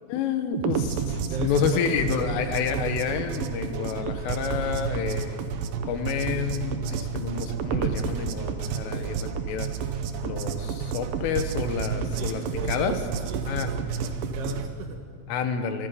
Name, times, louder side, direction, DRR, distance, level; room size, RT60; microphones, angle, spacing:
voice 1, 0.1-5.4 5.9-9.7 10.2-12.4 12.7-12.9 13.5-13.7 15.3-15.9, left 7 dB, 85° left, 7 dB, 3.9 m, -29 dB
sound 1, 0.5-14.7, right 6 dB, 85° right, 2.0 m, -30 dB
voice 2, 1.3-2.1 8.9-9.2 12.2-15.3, right 3 dB, 65° right, 3 dB, 3.1 m, -37 dB
26.0 x 21.5 x 5.2 m, 2.1 s
omnidirectional pair, 5.6 m